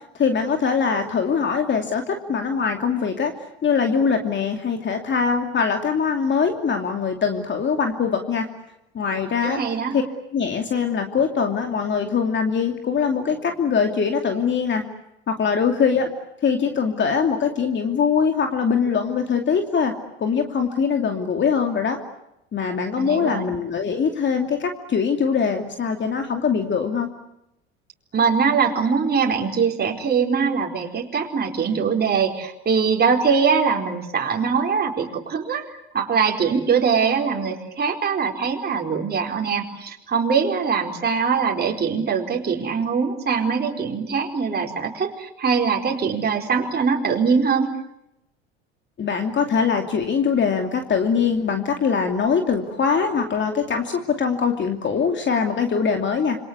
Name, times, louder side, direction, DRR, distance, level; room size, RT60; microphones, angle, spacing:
voice 1, 0.1-3.3 3.6-8.5 8.9-9.6 9.9-10.0 10.3-14.8 15.3-16.1 16.4-19.9 20.2-22.0 22.5-27.1 49.0-56.4, left 6 dB, 35° left, 4 dB, 2.8 m, -22 dB
voice 2, 9.4-9.9 23.0-23.5 28.1-35.7 35.9-47.7, right 6 dB, 30° right, 0 dB, 4.5 m, -22 dB
28.0 x 25.5 x 8.1 m, 0.84 s
hypercardioid pair, 70°, 33 cm